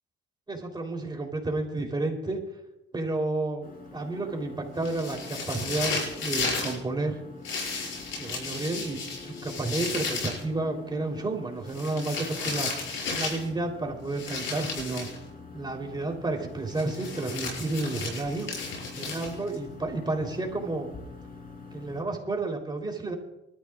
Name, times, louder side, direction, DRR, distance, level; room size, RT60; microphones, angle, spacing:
voice 1, 0.5-2.4 2.9-7.2 8.2-12.7 13.1-15.1 15.5-18.5 18.9-20.9 21.7-23.1, right 2 dB, 20° right, 2 dB, 3.6 m, -31 dB
sound 1, 3.6-22.0, left 4 dB, 45° left, 3.9 m, -46 dB
sound 2, 4.8-6.8 7.4-10.4 11.7-13.5 14.1-15.2 16.7-19.6, left 4 dB, 75° left, 6.3 m, -34 dB
25.0 x 13.0 x 2.5 m, 0.91 s
cardioid pair, 90°, 20 cm